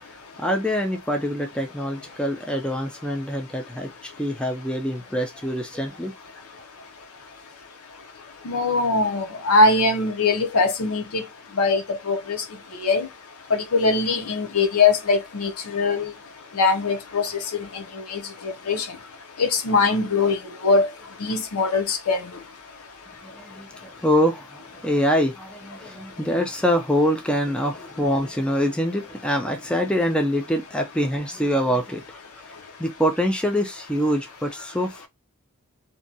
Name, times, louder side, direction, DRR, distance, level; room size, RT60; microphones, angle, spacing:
voice 1, 0.4-6.1 23.2-32.2 32.8-35.1, equal, 5° left, 0.4 m, -25 dB
voice 2, 8.4-11.2 11.6-12.4 12.8-13.1 13.5-16.1 16.5-18.9 19.4-20.4 20.6-20.9 21.2-22.2, left 3 dB, 85° left, 0.6 m, -22 dB
2.6 x 2.2 x 2.6 m
head